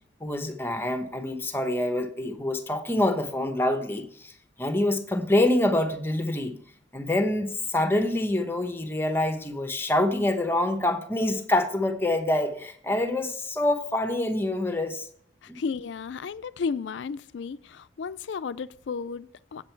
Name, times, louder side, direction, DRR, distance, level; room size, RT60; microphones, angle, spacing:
voice 1, 0.2-4.3 4.6-6.6 6.9-15.1 15.5-15.6, left 1 dB, 15° left, 0.9 m, -26 dB
voice 2, 15.4-19.6, left 5 dB, 80° left, 0.4 m, -33 dB
7.9 x 7.6 x 4.5 m
head